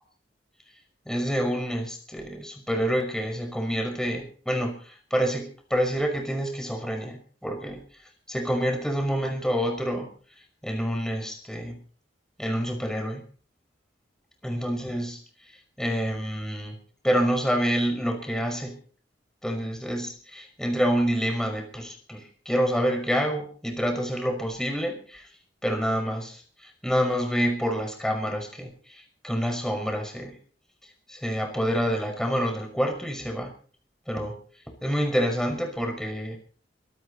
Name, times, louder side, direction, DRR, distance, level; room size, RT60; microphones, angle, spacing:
voice 1, 1.1-7.8 8.3-10.1 10.6-11.8 12.4-13.2 14.4-15.2 15.8-18.8 19.4-25.3 25.6-30.4 31.1-33.5 34.1-34.4 34.8-36.4, equal, 5° left, 3 dB, 5.7 m, -27 dB
25.5 x 13.0 x 4.2 m, 0.43 s
head